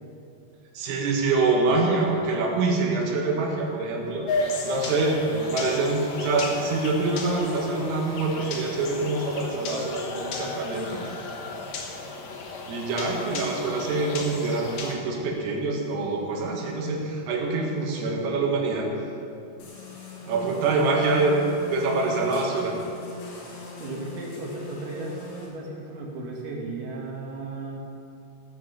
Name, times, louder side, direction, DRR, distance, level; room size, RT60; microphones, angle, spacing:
voice 1, 0.8-4.3 4.6-11.0 12.7-18.9 20.3-22.8, right 3 dB, 80° right, 0 dB, 4.3 m, -25 dB
sound 1, 4.3-14.9, left 3 dB, 80° left, 1.9 m, -34 dB
sound 2, 19.6-25.5, left 1 dB, 55° left, 2.9 m, -40 dB
voice 2, 23.8-27.8, right 2 dB, 60° right, -2 dB, 3.0 m, -35 dB
16.5 x 6.2 x 7.2 m, 2.6 s
omnidirectional pair, 5.9 m